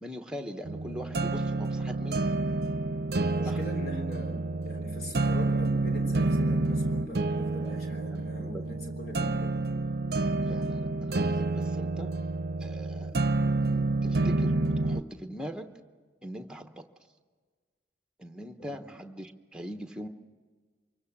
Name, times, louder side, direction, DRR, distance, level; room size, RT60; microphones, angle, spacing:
voice 1, 0.0-2.2 3.4-3.6 7.5-7.7 8.1-8.6 10.4-12.1 12.6-13.1 13.6-14.6 14.8-15.7 16.2-16.9 18.2-20.1, equal, 5° right, 6 dB, 1.0 m, -41 dB
sound 1, 0.7-15.0, right 2 dB, 55° right, 0.7 m, -29 dB
voice 2, 3.3-9.6 18.6-18.8, left 1 dB, 55° left, 4 dB, 3.6 m, -41 dB
25.0 x 22.5 x 7.3 m, 1.5 s
head